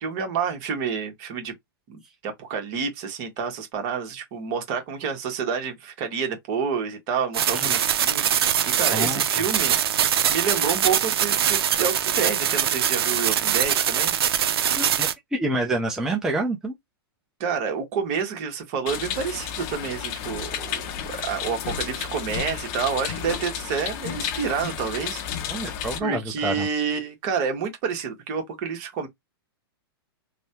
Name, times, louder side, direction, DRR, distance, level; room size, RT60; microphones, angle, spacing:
voice 1, 0.0-1.5 1.9-9.8 10.1-14.1 17.4-20.8 21.2-25.2 26.0-29.1, right 6 dB, 45° right, 1.3 m, -29 dB
sound 1, 7.3-15.1, right 9 dB, 75° right, 0.6 m, -23 dB
voice 2, 8.9-9.2 14.7-16.7 25.5-26.7, right 2 dB, 5° right, 0.6 m, -27 dB
sound 2, 18.9-26.0, left 8 dB, 40° left, 0.7 m, -32 dB
3.2 x 2.2 x 2.8 m
hypercardioid pair, 130°, 13 cm